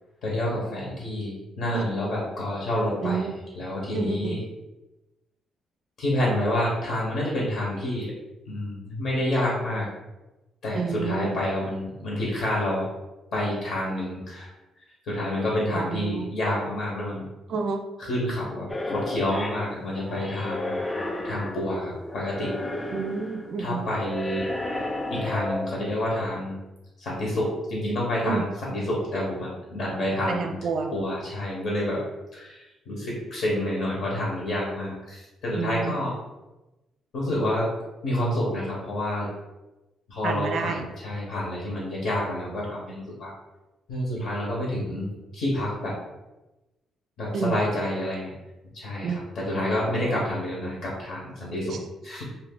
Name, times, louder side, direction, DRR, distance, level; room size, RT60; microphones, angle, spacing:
voice 1, 0.2-4.4 6.0-8.1 8.5-9.9 10.6-12.9 13.3-14.5 15.0-17.3 18.0-20.8 21.2-22.6 23.6-24.5 25.1-26.6 27.0-30.6 30.9-32.1 32.3-36.1 37.1-39.3 40.1-43.3 43.9-46.0 47.2-48.3 48.7-51.8 52.0-52.2, left 1 dB, 70° left, -4 dB, 1.0 m, -28 dB
voice 2, 3.0-3.4 3.9-4.4 10.7-11.4 15.7-16.3 17.5-17.8 22.9-23.8 28.2-28.4 30.3-30.9 35.5-36.0 40.2-40.9 47.3-47.6 49.0-49.2 51.7-51.8, right 5 dB, 65° right, 6 dB, 0.4 m, -29 dB
sound 1, 18.7-26.3, left 1 dB, 20° left, 0.4 m, -33 dB
2.7 x 2.5 x 3.7 m, 1.0 s
cardioid pair, 90°, 0 cm